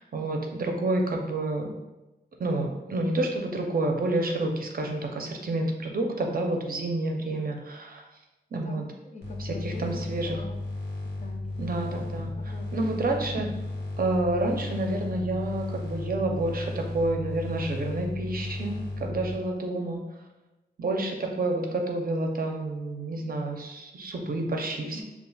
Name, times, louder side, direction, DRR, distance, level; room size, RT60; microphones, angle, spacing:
voice 1, 0.0-1.7 2.4-8.1 8.5-8.9 9.4-10.4 11.6-12.3 12.7-13.5 14.0-20.2 20.8-25.0, right 2 dB, 55° right, 2 dB, 0.5 m, -29 dB
voice 2, 8.6-10.6 11.2-11.6 12.0-13.0, left 2 dB, 40° left, 2 dB, 0.5 m, -43 dB
sound 1, 9.2-19.4, left 2 dB, 75° left, 0.9 m, -34 dB
5.4 x 2.3 x 2.3 m, 1.0 s
wide cardioid pair, 115°, 18 cm